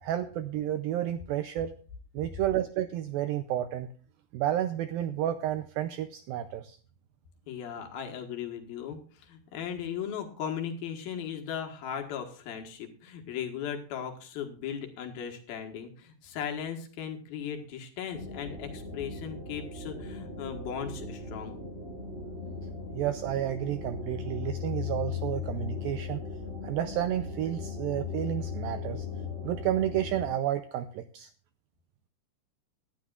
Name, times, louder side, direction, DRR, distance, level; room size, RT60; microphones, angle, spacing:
voice 1, 0.0-1.7 2.1-3.9 4.3-6.8 22.9-26.2 26.6-29.1 29.4-31.3, right 12 dB, 80° right, 10 dB, 2.1 m, -31 dB
voice 2, 7.5-21.6, left 8 dB, 65° left, 3 dB, 3.0 m, -37 dB
sound 1, 18.1-30.3, left 5 dB, 20° right, 3.0 m, -38 dB
18.5 x 11.5 x 2.4 m, 0.40 s
omnidirectional pair, 4.8 m